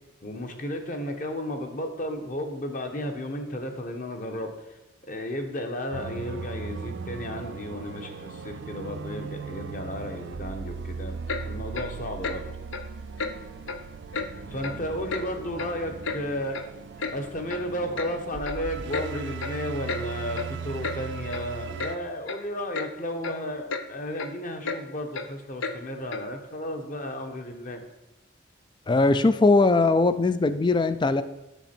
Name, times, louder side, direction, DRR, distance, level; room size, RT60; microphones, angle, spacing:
voice 1, 0.2-4.8 5.0-12.5 14.4-16.6 17.1-27.8, left 1 dB, 40° left, 5 dB, 0.9 m, -33 dB
sound 1, 5.9-22.0, right 5 dB, 60° right, 0.4 m, -38 dB
Clock, 11.3-11.4 11.7-11.9 12.2-12.4 12.7-12.9 13.2-13.3 13.7-13.8 14.1-14.3 14.6-14.8 15.1-15.2 15.6-16.2 16.5-16.6 17.0-17.2 17.5-17.6 18.0-18.1 18.5-18.6 18.9-19.1 19.4-19.6 19.9-20.0 20.4-20.5 20.8-21.0 21.3-21.4 21.8-21.9 22.3-22.4 22.7-22.9 23.2-23.4 23.7-23.9 24.2-24.3 24.6-24.8 25.1-25.3 25.6-25.8 26.1-26.3, left 4 dB, 75° left, 0.6 m, -32 dB
voice 2, 28.9-31.2, left 3 dB, 25° left, 12 dB, 0.3 m, -20 dB
8.1 x 6.2 x 4.4 m, 0.97 s
head